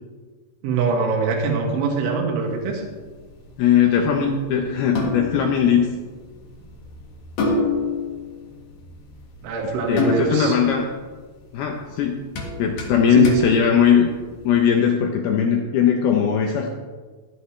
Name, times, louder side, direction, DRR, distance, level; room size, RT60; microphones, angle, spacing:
voice 1, 0.6-2.9 9.4-10.6 13.1-13.4, right 5 dB, 75° right, 1 dB, 4.1 m, -23 dB
sound 1, 2.4-14.6, left 3 dB, 55° left, 3.2 m, -30 dB
voice 2, 3.6-5.9 9.9-10.9 11.5-12.2 12.6-14.1 14.4-16.7, left 8 dB, 85° left, 2 dB, 2.2 m, -19 dB
14.5 x 13.0 x 3.3 m, 1.4 s
omnidirectional pair, 5.8 m